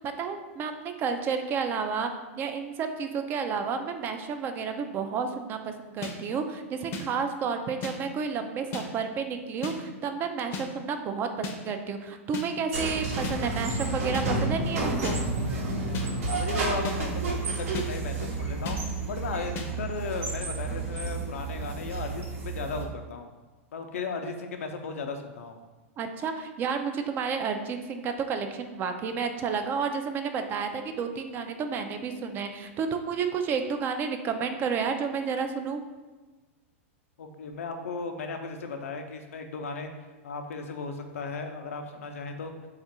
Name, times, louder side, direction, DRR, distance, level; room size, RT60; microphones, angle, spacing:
voice 1, 0.0-2.1 2.4-15.2 26.0-35.8, right 5 dB, 30° right, 7 dB, 0.3 m, -31 dB
sound 1, 6.0-6.1 6.9-7.0 7.8-7.9 8.7-8.9 9.6-9.8 10.5-10.7 11.4-11.6 12.3-12.5 13.2-13.4 14.1-14.3 15.0-15.2 15.9-16.1 16.8-17.0 17.7-17.9 18.7-18.8 19.6-19.7, left 3 dB, 35° left, 0.5 m, -34 dB
sound 2, 12.7-22.8, right 3 dB, 75° right, 0.9 m, -31 dB
voice 2, 16.3-18.8 19.1-23.3 23.7-25.6 37.2-39.9 40.2-42.5, left 4 dB, 85° left, 5 dB, 0.5 m, -36 dB
3.5 x 2.4 x 4.1 m, 1.2 s
hypercardioid pair, 130°, 7 cm